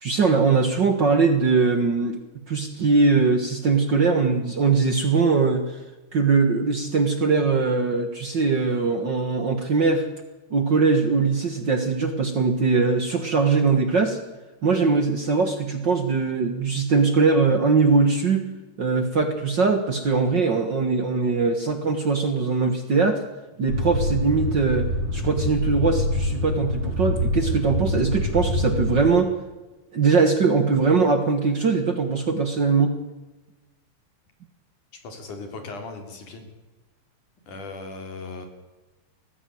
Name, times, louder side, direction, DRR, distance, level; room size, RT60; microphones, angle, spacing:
voice 1, 0.0-2.2 2.5-5.8 6.1-10.1 10.5-14.2 14.6-18.5 18.8-23.2 23.6-24.9 25.1-29.3 29.9-32.9, right 4 dB, 45° right, 8 dB, 1.7 m, -21 dB
sound 1, 23.7-29.0, left 1 dB, 90° right, 6.6 m, -25 dB
voice 2, 35.0-36.5 37.5-38.5, left 3 dB, 75° left, 6 dB, 4.8 m, -37 dB
19.5 x 15.5 x 9.4 m, 1.2 s
omnidirectional pair, 3.6 m